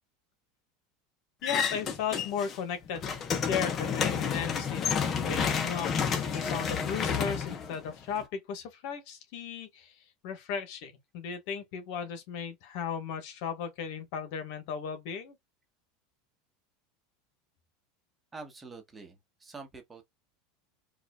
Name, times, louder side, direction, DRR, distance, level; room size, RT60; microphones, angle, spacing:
voice 1, 1.4-3.2 3.5-5.9 6.2-9.9 10.2-15.4, left 7 dB, 65° left, 1.4 m, -36 dB
sound 1, 1.4-2.6 2.9-8.2, left 6 dB, 30° left, 0.9 m, -30 dB
voice 2, 18.3-20.0, right 4 dB, 15° right, 1.1 m, -46 dB
4.8 x 2.5 x 2.3 m
supercardioid pair, 135°, 0 cm